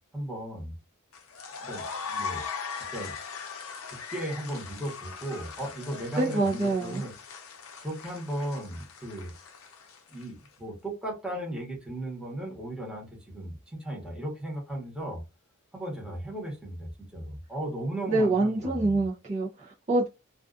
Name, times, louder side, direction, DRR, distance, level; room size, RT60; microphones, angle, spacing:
voice 1, 0.1-0.7 1.6-2.5 2.9-3.1 3.9-7.1 7.8-9.3 10.1-15.2 15.7-19.0, right 1 dB, 5° right, 1.1 m, -36 dB
sound 1, 1.1-10.5, left 6 dB, 70° left, 0.6 m, -40 dB
voice 2, 6.2-7.0 18.1-20.1, right 2 dB, 30° right, 0.6 m, -26 dB
2.4 x 2.4 x 2.3 m
head